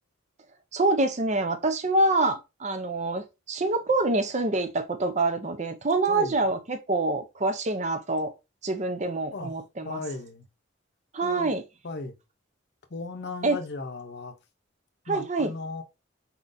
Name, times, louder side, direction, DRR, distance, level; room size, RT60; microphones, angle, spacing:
voice 1, 0.7-8.3 8.6-10.0 11.1-11.6 13.4-13.6 15.1-15.5, right 2 dB, 35° right, 0.6 m, -26 dB
voice 2, 6.1-6.4 9.3-9.5 9.8-10.5 11.2-11.5 11.8-12.2 12.9-14.4 15.1-15.8, left 3 dB, 55° left, 0.7 m, -36 dB
4.3 x 3.8 x 2.6 m
head